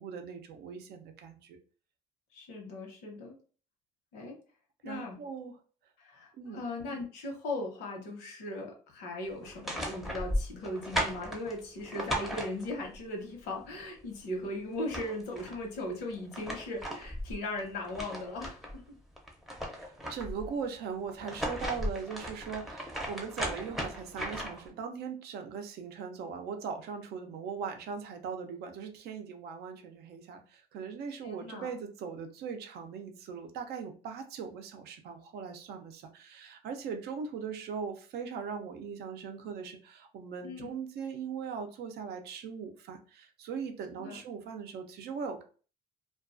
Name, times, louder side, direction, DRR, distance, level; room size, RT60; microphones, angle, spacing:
voice 1, 0.0-1.6 4.8-5.6 6.4-6.6 19.6-45.4, right 6 dB, 70° right, 6 dB, 0.5 m, -40 dB
voice 2, 2.3-3.4 4.1-4.4 4.8-5.2 6.0-18.6 31.2-31.7 40.4-40.8 44.0-44.2, left 2 dB, 90° left, 2 dB, 0.8 m, -38 dB
sound 1, 9.4-13.0 14.4-14.5 14.7-15.6 16.1-18.8 19.2-20.5 21.1-24.7, equal, ahead, 0.5 m, -36 dB
2.3 x 2.2 x 2.5 m, 0.39 s
cardioid pair, 110°, 17 cm